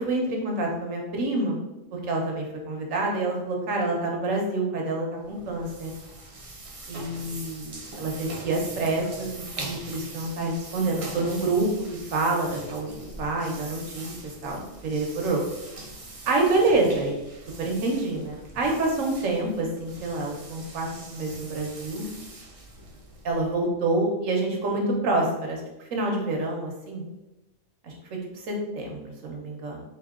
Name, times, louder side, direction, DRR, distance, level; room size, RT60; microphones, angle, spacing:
voice 1, 0.0-1.6 1.9-5.9 6.9-11.7 12.1-12.9 13.2-14.1 14.4-15.4 16.3-17.2 17.6-22.1 23.2-25.6 25.9-27.0 27.8-27.9 28.4-29.8, right 2 dB, 80° right, 0 dB, 1.3 m, -27 dB
sound 1, 5.2-23.6, right 2 dB, 40° right, 0.5 m, -42 dB
3.8 x 2.7 x 3.6 m, 0.95 s
omnidirectional pair, 1.3 m